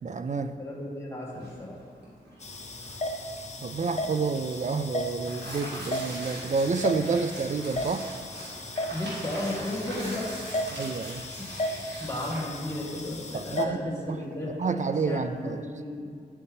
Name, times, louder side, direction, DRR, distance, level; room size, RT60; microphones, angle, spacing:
voice 1, 0.0-0.6 3.6-8.1 10.7-11.2 13.3-13.8 14.1-14.2 14.6-15.6, right 4 dB, 45° right, 10 dB, 0.4 m, -29 dB
voice 2, 0.6-1.7 8.9-10.3 11.2-11.5 12.0-16.1, left 1 dB, 15° left, -5 dB, 1.8 m, -34 dB
Tearing, 1.3-15.6, right 1 dB, 90° right, 1.7 m, -43 dB
sound 1, 2.4-13.6, left 1 dB, 40° left, 0.8 m, -35 dB
9.8 x 4.2 x 3.5 m, 2.2 s
cardioid pair, 40°, 17 cm